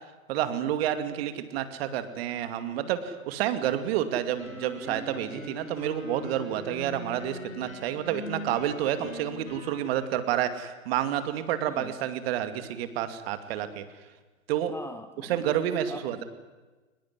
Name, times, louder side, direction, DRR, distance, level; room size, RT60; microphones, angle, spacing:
voice 1, 0.3-13.8 14.5-14.7 15.3-16.2, right 11 dB, 50° right, 11 dB, 2.5 m, -29 dB
sound 1, 4.4-9.9, left 2 dB, 90° left, 6.9 m, -41 dB
voice 2, 14.7-16.2, left 2 dB, 5° left, 10 dB, 0.9 m, -43 dB
22.5 x 20.5 x 9.8 m, 1.2 s
hypercardioid pair, 115°, 40 cm